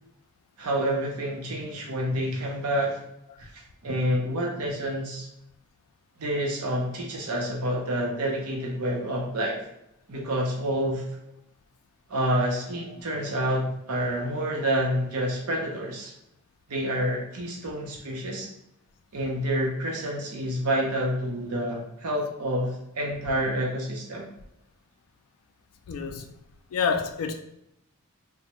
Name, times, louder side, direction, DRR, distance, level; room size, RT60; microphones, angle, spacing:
voice 1, 0.6-3.0 3.4-5.3 6.2-9.6 10.1-11.0 12.1-16.1 16.7-18.5 19.1-24.3, equal, 80° right, 0.7 m, -28 dB
voice 2, 25.9-26.3 26.7-27.3, left 5 dB, 70° left, 0.3 m, -29 dB
3.1 x 2.1 x 2.9 m
head